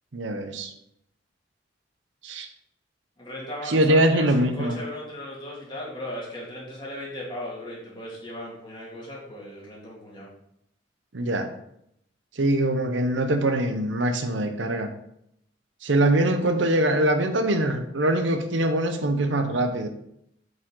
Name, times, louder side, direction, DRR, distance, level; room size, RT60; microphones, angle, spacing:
voice 1, 0.1-0.7 2.2-2.5 3.6-4.8 11.1-11.5 12.4-14.9 15.8-19.9, right 1 dB, 80° right, 7 dB, 0.8 m, -23 dB
voice 2, 3.2-10.3, left 1 dB, 25° left, -5 dB, 2.5 m, -37 dB
7.6 x 5.3 x 3.8 m, 0.75 s
head